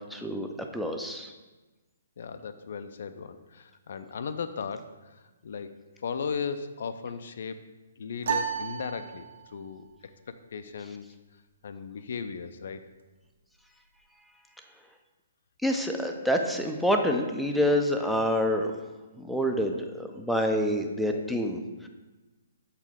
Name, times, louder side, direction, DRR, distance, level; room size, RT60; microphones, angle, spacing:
voice 1, 0.1-1.3 15.6-18.7 19.2-21.9, equal, ahead, 3 dB, 0.5 m, -27 dB
voice 2, 2.2-5.7 6.0-7.6 8.0-9.9 10.3-11.1 11.6-12.8, left 6 dB, 60° left, 10 dB, 0.4 m, -36 dB
sound 1, 8.2-9.7, right 7 dB, 60° right, 0.7 m, -32 dB
6.9 x 4.4 x 3.7 m, 1.2 s
figure-of-eight pair, 130°, 0 cm